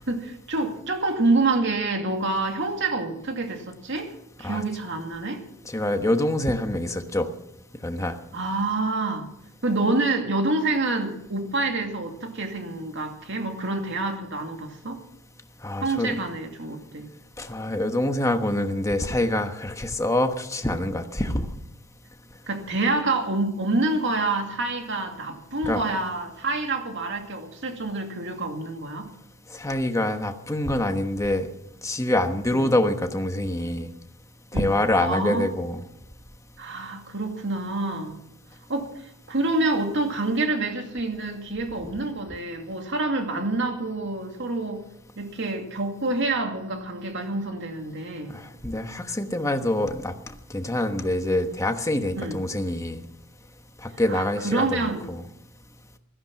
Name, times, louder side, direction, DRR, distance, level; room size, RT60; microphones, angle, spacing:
voice 1, 0.0-4.1 4.4-5.4 8.3-9.3 9.6-15.0 15.8-17.1 22.5-29.1 32.5-32.7 34.5-34.7 35.0-35.5 36.6-38.2 38.7-44.8 45.2-48.4 52.1-52.4 54.1-55.0, right 2 dB, 60° right, 4 dB, 2.4 m, -27 dB
voice 2, 5.6-7.3 7.8-8.2 15.6-16.2 17.4-21.5 25.6-25.8 29.5-31.5 31.8-33.9 34.5-35.8 48.3-50.1 50.5-53.0 53.8-55.2, left 1 dB, 15° left, 6 dB, 1.2 m, -25 dB
16.0 x 14.0 x 5.8 m, 0.79 s
head